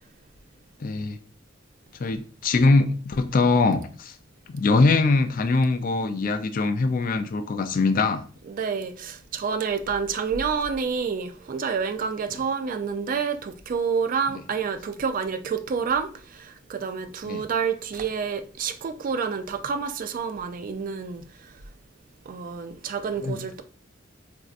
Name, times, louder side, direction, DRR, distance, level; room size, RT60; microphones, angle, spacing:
voice 1, 0.8-1.2 2.0-4.2 4.5-8.2 17.2-17.4 23.2-23.4, left 3 dB, 45° left, 0.4 m, -22 dB
voice 2, 8.5-21.5 22.3-23.6, right 6 dB, 45° right, 0.3 m, -28 dB
4.3 x 2.6 x 2.4 m
head